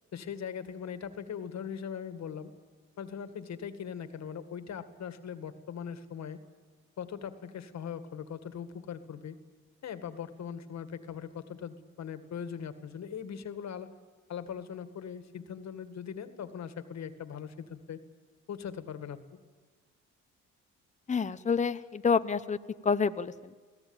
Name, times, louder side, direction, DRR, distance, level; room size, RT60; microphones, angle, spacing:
voice 1, 0.1-2.5 3.0-6.4 7.0-9.4 9.8-13.9 14.3-18.0 18.5-19.2, left 7 dB, 60° left, 10 dB, 2.0 m, -40 dB
voice 2, 21.1-22.6 22.8-23.5, left 5 dB, 25° left, 11 dB, 0.8 m, -28 dB
23.5 x 17.0 x 8.9 m, 1.4 s
cardioid pair, 90°, 30 cm